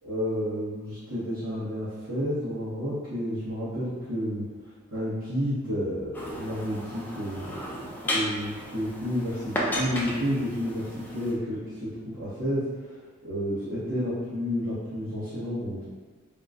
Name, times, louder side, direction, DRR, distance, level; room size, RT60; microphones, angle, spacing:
voice 1, 0.0-4.5 4.9-7.8 8.1-12.6 13.2-15.9, equal, 70° right, -14 dB, 1.1 m, -31 dB
sound 1, 6.1-11.3, equal, 10° left, 0.3 m, -34 dB
3.8 x 2.3 x 2.4 m, 1.4 s
head